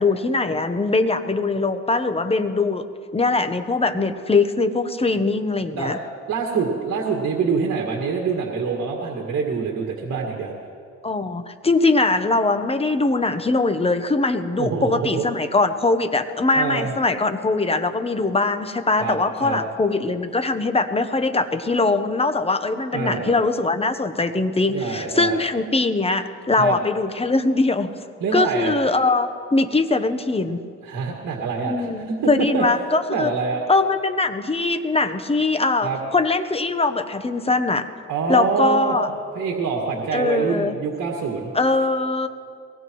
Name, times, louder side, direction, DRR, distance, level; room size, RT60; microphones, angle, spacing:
voice 1, 0.0-2.8 3.1-6.0 11.0-27.9 28.3-30.6 31.6-33.3 33.7-37.9 38.3-39.1 40.1-40.8 41.5-42.3, left 3 dB, 20° left, 9 dB, 0.9 m, -21 dB
voice 2, 5.8-10.5 14.6-15.2 16.5-16.9 19.0-19.6 22.9-23.3 24.7-25.4 26.6-26.8 28.2-28.8 30.8-32.7 33.1-33.6 35.8-36.0 38.1-39.0 39.3-41.5, right 5 dB, 65° right, -1 dB, 2.1 m, -25 dB
22.5 x 19.5 x 3.1 m, 2.3 s
cardioid pair, 90°, 30 cm